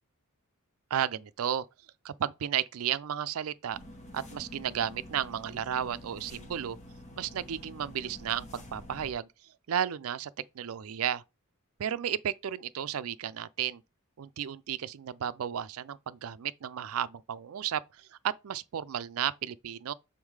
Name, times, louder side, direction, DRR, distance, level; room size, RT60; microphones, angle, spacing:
voice 1, 0.9-1.7 2.0-3.8 4.1-6.8 7.2-9.3 9.7-11.2 11.8-13.8 14.2-19.9, right 9 dB, 70° right, 0.4 m, -33 dB
sound 1, 3.7-9.1, left 1 dB, 35° left, 1.2 m, -48 dB
7.1 x 3.6 x 4.7 m
head